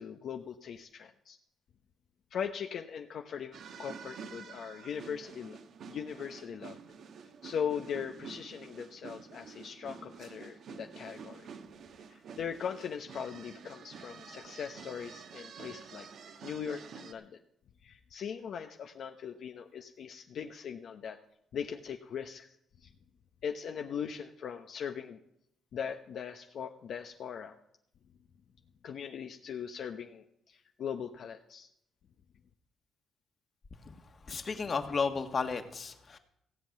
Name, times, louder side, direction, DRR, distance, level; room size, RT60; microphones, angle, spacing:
voice 1, 0.0-1.4 2.3-5.6 5.9-6.8 7.4-11.5 12.1-16.1 16.4-17.4 17.8-21.2 21.5-22.9 23.4-25.2 25.7-27.6 28.8-31.7, left 7 dB, 65° left, 5 dB, 0.8 m, -40 dB
sound 1, 3.5-17.1, right 6 dB, 65° right, 1.3 m, -49 dB
voice 2, 34.2-36.2, left 5 dB, 40° left, 6 dB, 1.6 m, -33 dB
16.0 x 5.6 x 9.1 m, 0.77 s
cardioid pair, 90°, 0 cm